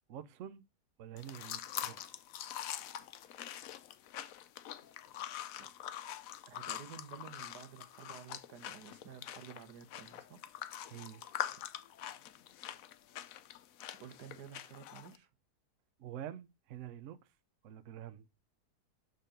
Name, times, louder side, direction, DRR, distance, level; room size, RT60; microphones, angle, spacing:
voice 1, 0.1-0.6 1.0-2.2 10.9-11.2 16.0-17.3 17.6-18.3, right 10 dB, 60° right, 0.9 m, -47 dB
sound 1, 1.2-15.2, left 11 dB, 70° left, 0.9 m, -44 dB
voice 2, 6.5-10.4 11.5-11.6 14.0-15.3, right 8 dB, 85° right, 1.6 m, -52 dB
6.6 x 3.8 x 5.1 m
omnidirectional pair, 1.7 m